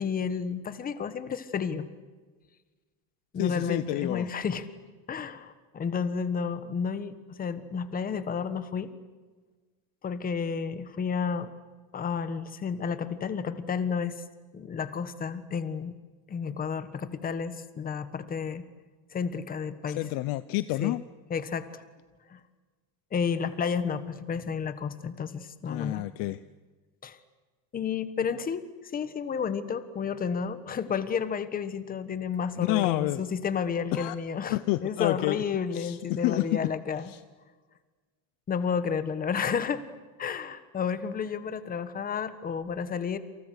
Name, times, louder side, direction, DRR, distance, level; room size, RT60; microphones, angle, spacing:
voice 1, 0.0-1.9 3.3-4.7 5.1-8.9 10.0-11.5 11.9-14.2 14.5-16.0 16.3-18.6 19.1-20.0 20.8-21.0 21.3-21.8 22.3-22.4 23.1-26.0 27.0-27.2 27.7-37.1 38.5-39.8 40.2-43.2, left 6 dB, 20° left, 12 dB, 1.4 m, -31 dB
voice 2, 3.4-4.3 19.9-21.0 25.7-26.4 32.6-33.2 33.9-34.2 34.5-35.4 35.7-36.6 37.1-37.2, left 18 dB, 45° left, 15 dB, 0.7 m, -29 dB
29.0 x 27.5 x 6.6 m, 1.3 s
cardioid pair, 170°, 47 cm